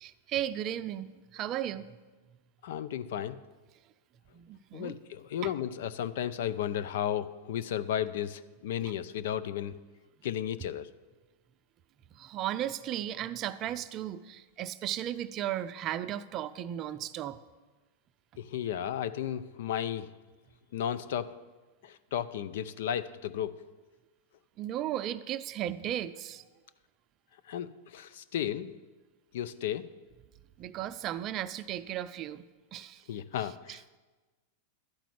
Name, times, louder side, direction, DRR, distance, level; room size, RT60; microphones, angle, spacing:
voice 1, 0.0-1.9 4.3-5.0 5.4-5.5 12.2-17.4 24.6-26.4 30.6-32.4 32.7-33.0, right 12 dB, 40° right, 12 dB, 0.4 m, -35 dB
voice 2, 2.6-3.4 4.7-9.7 10.2-10.9 18.4-20.1 20.7-21.3 21.8-23.6 27.5-28.8 29.3-29.9 33.1-34.0, left 10 dB, 70° left, 15 dB, 0.5 m, -34 dB
12.0 x 5.1 x 7.7 m, 1.2 s
hypercardioid pair, 130°, 0 cm